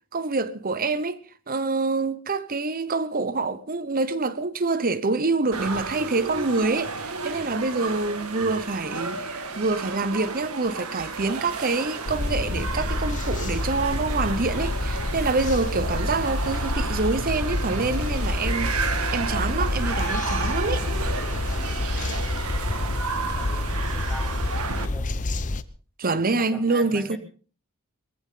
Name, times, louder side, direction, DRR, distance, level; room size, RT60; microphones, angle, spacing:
voice 1, 0.1-20.8 26.0-27.2, right 3 dB, 40° right, 0.9 m, -26 dB
sound 1, 5.5-24.9, right 4 dB, 80° right, 1.8 m, -32 dB
sound 2, 12.1-25.6, left 2 dB, 35° left, 0.8 m, -28 dB
voice 2, 22.7-25.2 26.3-27.2, left 1 dB, 5° left, 2.5 m, -43 dB
21.0 x 15.0 x 3.8 m
head